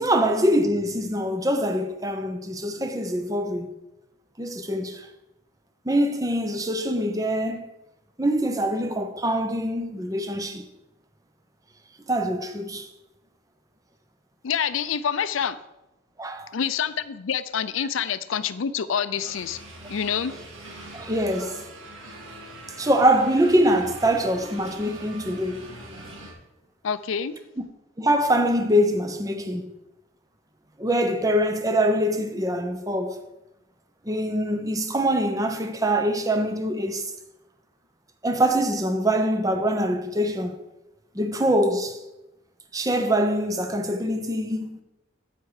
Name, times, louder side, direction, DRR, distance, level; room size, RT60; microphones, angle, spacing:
voice 1, 0.0-3.7 4.4-5.1 5.9-7.7 8.2-10.7 12.1-12.9 16.2-16.5 20.9-21.6 22.8-25.6 28.0-29.7 30.8-33.2 34.1-37.0 38.2-40.6 41.1-42.0 42.7-44.7, right 1 dB, 15° right, 0.8 m, -24 dB
voice 2, 14.4-15.6 16.5-19.6 19.9-20.3 26.8-27.4, left 7 dB, 75° left, 0.5 m, -27 dB
sound 1, 19.1-26.3, right 1 dB, 75° right, 2.3 m, -42 dB
9.0 x 8.2 x 4.9 m
head